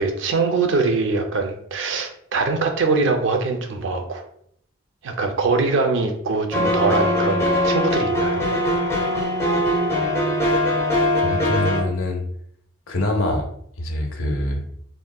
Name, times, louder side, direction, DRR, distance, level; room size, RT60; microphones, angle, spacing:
voice 1, 0.0-4.3 5.0-8.4, right 4 dB, 60° right, 5 dB, 0.4 m, -22 dB
sound 1, 6.5-11.8, left 1 dB, 15° left, 0.5 m, -21 dB
voice 2, 11.2-12.2 12.9-13.5 13.8-14.6, left 1 dB, 80° left, 3 dB, 0.6 m, -24 dB
3.5 x 2.0 x 2.2 m, 0.68 s
head